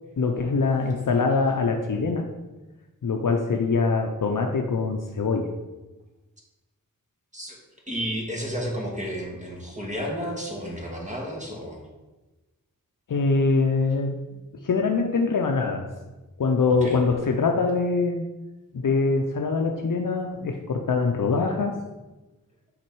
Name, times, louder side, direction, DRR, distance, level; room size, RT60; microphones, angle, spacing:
voice 1, 0.2-2.3 3.0-5.5 13.1-14.2 14.6-15.9 16.4-18.3 18.7-21.8, left 4 dB, 65° left, 3 dB, 0.6 m, -23 dB
voice 2, 7.9-11.8 16.8-17.0, equal, 20° right, -2 dB, 1.6 m, -32 dB
6.1 x 4.1 x 4.6 m, 1.1 s
wide cardioid pair, 55°, 34 cm